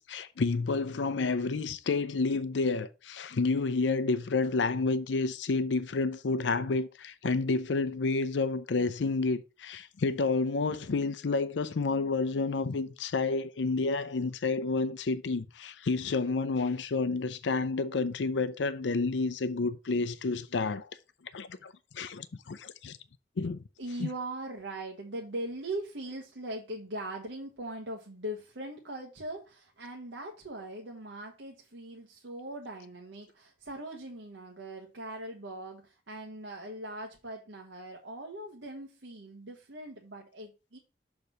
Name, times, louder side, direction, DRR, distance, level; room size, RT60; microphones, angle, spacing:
voice 1, 0.0-20.9 21.3-23.0 23.4-23.6 24.0-24.1, left 3 dB, 80° left, 0.5 m, -30 dB
voice 2, 23.8-40.8, right 1 dB, 85° right, 1.2 m, -40 dB
6.7 x 4.0 x 5.6 m
head